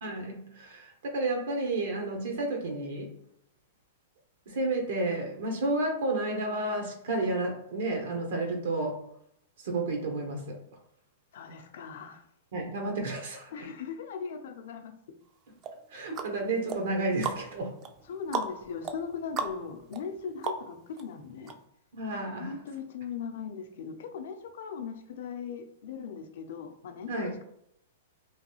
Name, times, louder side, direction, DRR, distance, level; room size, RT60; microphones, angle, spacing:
voice 1, 0.0-3.1 4.5-9.0 9.6-10.6 12.5-13.5 15.9-17.7 21.9-22.5 27.1-27.3, right 2 dB, 75° right, 1 dB, 0.8 m, -31 dB
voice 2, 11.3-12.3 13.5-15.0 18.1-21.5 22.4-27.4, left 6 dB, 70° left, 6 dB, 0.5 m, -39 dB
sound 1, 15.6-21.0 21.5-21.6, right 5 dB, 30° right, 0.4 m, -37 dB
3.0 x 2.3 x 3.0 m, 0.73 s
hypercardioid pair, 135°, 0 cm